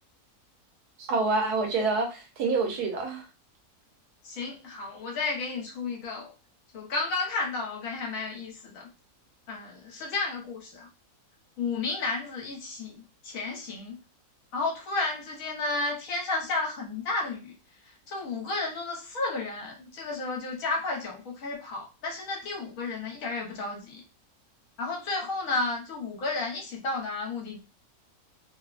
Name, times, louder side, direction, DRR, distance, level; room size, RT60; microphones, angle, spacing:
voice 1, 1.0-3.2, right 3 dB, 85° right, 2 dB, 1.3 m, -27 dB
voice 2, 4.2-6.3 6.7-8.9 9.5-10.9 11.6-14.0 14.5-17.5 17.8-24.0 24.8-27.6, left 3 dB, 65° left, -1 dB, 1.2 m, -32 dB
3.0 x 2.1 x 2.4 m, 0.31 s
omnidirectional pair, 1.6 m